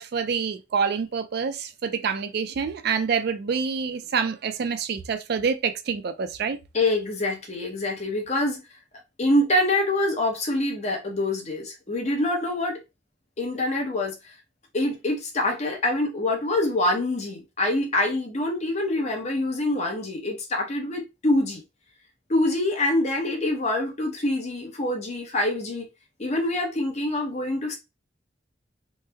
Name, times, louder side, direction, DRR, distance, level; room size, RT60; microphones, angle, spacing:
voice 1, 0.0-6.6, right 6 dB, 55° right, 0.4 m, -27 dB
voice 2, 6.7-8.6 9.2-12.8 13.4-14.1 14.7-21.6 22.3-25.9 26.2-27.7, left 1 dB, 40° left, 0.9 m, -25 dB
3.2 x 2.1 x 3.3 m
head